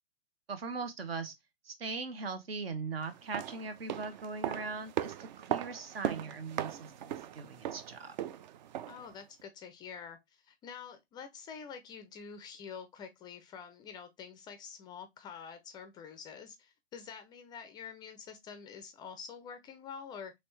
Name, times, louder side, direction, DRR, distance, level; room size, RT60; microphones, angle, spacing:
voice 1, 0.5-1.3 1.6-8.2, right 4 dB, 70° right, 1.1 m, -40 dB
sound 1, 3.1-9.1 9.4-9.5, right 11 dB, 50° right, 0.4 m, -38 dB
voice 2, 8.9-20.3, left 6 dB, 15° left, 0.3 m, -47 dB
4.2 x 3.2 x 3.1 m
figure-of-eight pair, 110°, 30 cm